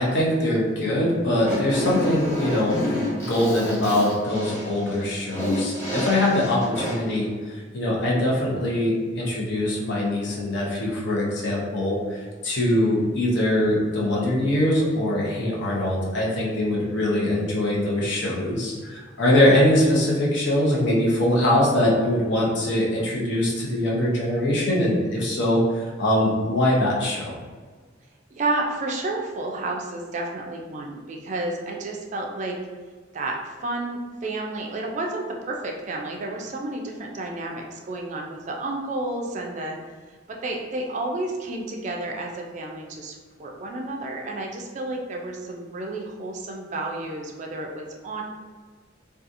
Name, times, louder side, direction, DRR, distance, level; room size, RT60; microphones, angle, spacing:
voice 1, 0.0-2.8 3.3-27.4, left 1 dB, 65° left, -4 dB, 0.7 m, -22 dB
Fart, 1.3-7.1, left 1 dB, 15° left, 0.9 m, -28 dB
voice 2, 28.4-32.6 33.1-39.8 40.3-48.2, right 2 dB, 40° right, 0 dB, 0.3 m, -31 dB
2.7 x 2.3 x 2.5 m, 1.5 s
head